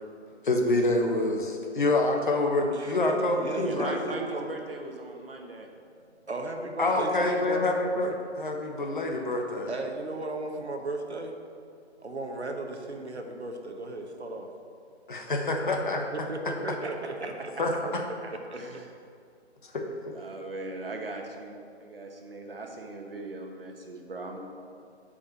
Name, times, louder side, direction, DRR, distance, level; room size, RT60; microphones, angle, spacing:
voice 1, 0.4-4.0 6.8-9.7 15.1-16.3 17.6-18.0 19.6-20.2, left 2 dB, 45° left, 2 dB, 1.1 m, -27 dB
voice 2, 2.7-4.5 5.1-5.3 6.3-8.0 9.7-11.4 12.0-14.5 15.9-17.7 18.5-18.8, right 2 dB, 70° right, 3 dB, 1.2 m, -36 dB
voice 3, 3.6-5.7 18.2-18.9 20.1-24.4, right 2 dB, 55° right, 2 dB, 1.4 m, -39 dB
7.2 x 5.2 x 7.1 m, 2.3 s
figure-of-eight pair, 150°, 34 cm